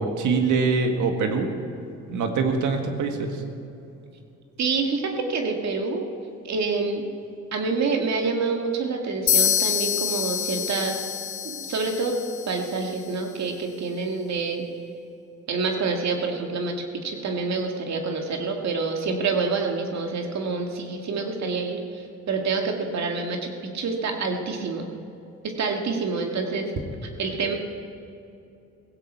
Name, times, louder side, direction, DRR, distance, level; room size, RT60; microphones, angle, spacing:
voice 1, 0.0-1.5 2.1-3.3, right 4 dB, 80° right, 4 dB, 1.9 m, -23 dB
voice 2, 4.6-6.1 6.4-7.0 7.5-11.1 11.4-12.2 12.5-14.7 15.5-16.7 17.0-24.9 25.4-26.7 27.2-27.6, right 4 dB, 65° right, 2 dB, 2.1 m, -27 dB
sound 1, 9.3-13.0, left 10 dB, 75° left, 0.8 m, -26 dB
16.5 x 16.0 x 4.6 m, 2.7 s
cardioid pair, 90°, 30 cm